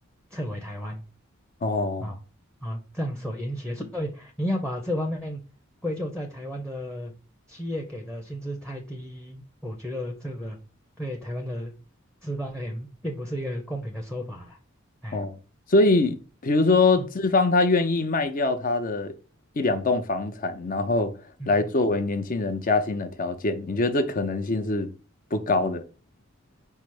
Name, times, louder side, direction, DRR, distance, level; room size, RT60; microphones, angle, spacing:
voice 1, 0.3-1.0 2.0-2.2 2.6-5.4 5.8-7.1 7.5-10.6 11.0-11.7 12.2-14.6 15.0-15.2 17.0-17.1 21.4-21.5, equal, 5° left, 0.7 m, -32 dB
voice 2, 1.6-2.1 15.1-15.4 15.7-19.1 19.6-21.1 21.5-24.9 25.3-25.8, left 3 dB, 45° left, 0.6 m, -23 dB
5.6 x 2.0 x 4.7 m
head